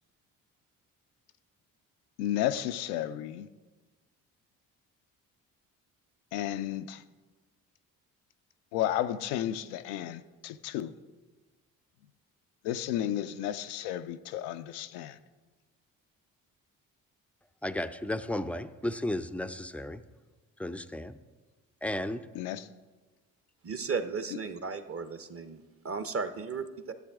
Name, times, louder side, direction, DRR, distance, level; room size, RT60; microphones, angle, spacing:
voice 1, 2.2-3.5 6.3-7.0 8.7-10.9 12.6-15.2 22.4-22.7, left 12 dB, 85° left, 0.5 m, -32 dB
voice 2, 17.6-20.0 20.6-21.2 21.8-22.3, left 1 dB, 5° left, 0.4 m, -34 dB
voice 3, 23.6-26.9, right 5 dB, 35° right, 0.8 m, -35 dB
11.5 x 8.0 x 3.6 m
supercardioid pair, 55°, 39 cm